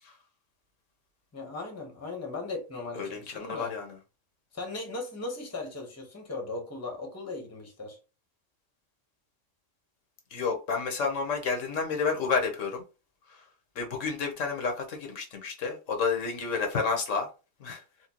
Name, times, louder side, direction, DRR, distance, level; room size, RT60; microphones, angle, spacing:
voice 1, 1.3-3.7 4.5-8.0, left 3 dB, 15° left, 0.8 m, -38 dB
voice 2, 3.0-3.9 10.3-12.8 13.8-17.3 17.6-17.8, left 5 dB, 75° left, 1.2 m, -30 dB
4.3 x 2.2 x 2.9 m
omnidirectional pair, 1.3 m